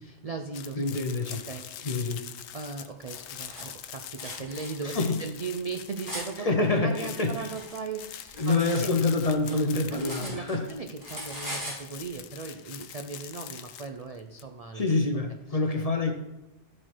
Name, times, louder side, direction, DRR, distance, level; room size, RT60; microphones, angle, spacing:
voice 1, 0.1-0.8 1.2-1.7 2.5-6.5 6.8-8.5 8.8-8.9 9.9-14.9 15.5-15.6, right 4 dB, 50° right, 5 dB, 0.4 m, -38 dB
sound 1, 0.5-6.6 6.9-14.4, left 10 dB, 90° left, 1.0 m, -43 dB
voice 2, 0.8-1.4 1.8-2.2 4.8-5.2 6.4-7.5 8.4-10.7 14.7-16.1, left 3 dB, 35° left, 4 dB, 0.8 m, -26 dB
Cutlery silverware, 3.1-3.6 4.2-4.7 5.4-6.3 7.1-8.9 9.2-10.7 11.0-11.8, equal, 30° right, 3.8 m, -40 dB
13.0 x 4.4 x 4.5 m, 0.95 s
omnidirectional pair, 1.3 m